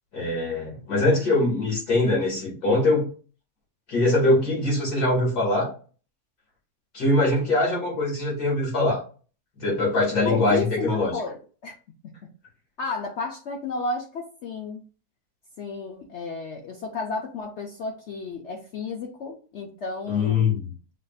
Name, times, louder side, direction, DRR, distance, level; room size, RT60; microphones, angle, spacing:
voice 1, 0.1-3.1 3.9-5.7 6.9-9.0 9.6-11.1 20.1-20.7, left 2 dB, 85° left, -3 dB, 2.8 m, -22 dB
voice 2, 10.2-11.4 11.6-11.8 12.0-12.1 12.8-14.8 15.6-20.6, left 3 dB, 60° left, 1 dB, 0.8 m, -32 dB
6.4 x 2.5 x 2.4 m, 0.38 s
omnidirectional pair, 1.6 m